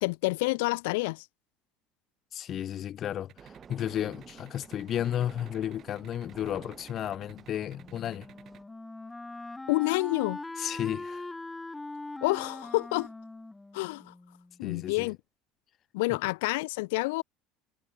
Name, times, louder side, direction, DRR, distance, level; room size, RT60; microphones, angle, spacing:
voice 1, 0.0-1.3 9.7-10.4 12.2-13.1 13.7-14.1 14.6-15.2 15.9-17.2, left 24 dB, 85° left, 1.0 m, -28 dB
voice 2, 2.3-8.3 10.6-11.3 14.6-15.1 16.1-16.2, left 10 dB, 40° left, 0.9 m, -33 dB
sound 1, 3.3-8.6, right 12 dB, 45° right, 2.8 m, -53 dB
sound 2, 3.4-8.6, right 6 dB, 25° right, 4.0 m, -51 dB
Wind instrument woodwind instrument, 7.7-14.6, left 2 dB, 10° left, 0.7 m, -42 dB
supercardioid pair, 120°, 0 cm